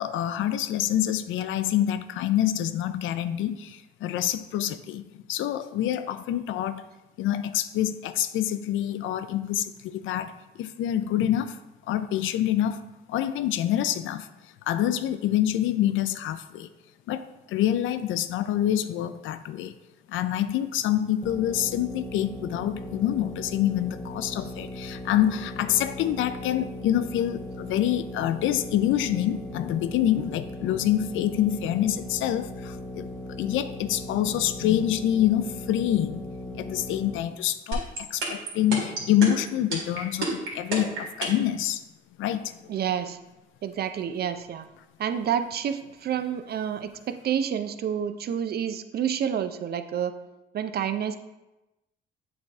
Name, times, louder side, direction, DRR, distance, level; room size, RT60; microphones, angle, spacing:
voice 1, 0.0-6.8 7.2-11.6 11.9-12.8 13.1-14.3 14.7-16.7 17.1-19.7 20.1-41.8 42.2-42.8, left 11 dB, 80° left, 13 dB, 0.4 m, -26 dB
sound 1, 21.2-37.2, left 1 dB, 10° left, 0.6 m, -38 dB
sound 2, 37.7-41.5, right 3 dB, 90° right, 1.9 m, -29 dB
voice 2, 42.7-43.2 43.6-44.6 45.0-50.1 50.5-51.2, right 8 dB, 55° right, 10 dB, 0.5 m, -29 dB
8.0 x 3.3 x 3.5 m, 0.99 s
cardioid pair, 90°, 20 cm